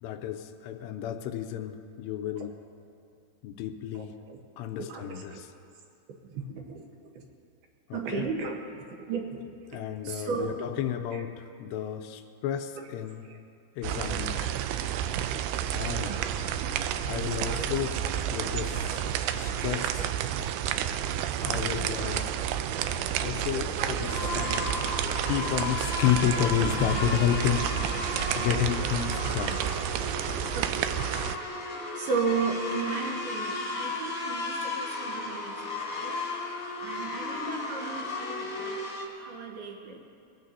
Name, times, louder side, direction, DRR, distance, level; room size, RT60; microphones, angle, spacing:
voice 1, 0.0-2.6 3.4-4.1 4.6-5.5 7.9-8.3 9.7-13.3 13.8-14.6 15.7-16.2 17.1-17.9 18.3-19.1 19.3-20.1 21.4-22.3 23.2-24.6 25.3-29.6, left 10 dB, 85° left, 7 dB, 2.7 m, -31 dB
voice 2, 3.9-4.4 4.9-5.4 6.3-6.8 7.2-7.3 7.9-9.4 10.0-10.7 11.1-11.3 13.3-13.4 14.1-14.4 16.1-16.8 17.4-17.7 19.6-19.7 20.0-20.1 21.8-22.1 23.7-24.8 26.3-26.5 29.7-29.9 30.5-30.9 32.0-36.2 36.8-38.8 39.2-40.0, right 5 dB, 70° right, 2 dB, 2.9 m, -35 dB
sound 1, 13.8-31.4, right 10 dB, 90° right, 2.3 m, -30 dB
sound 2, 24.1-39.1, left 3 dB, 30° left, 1.5 m, -35 dB
22.5 x 16.5 x 2.8 m, 2.4 s
omnidirectional pair, 5.1 m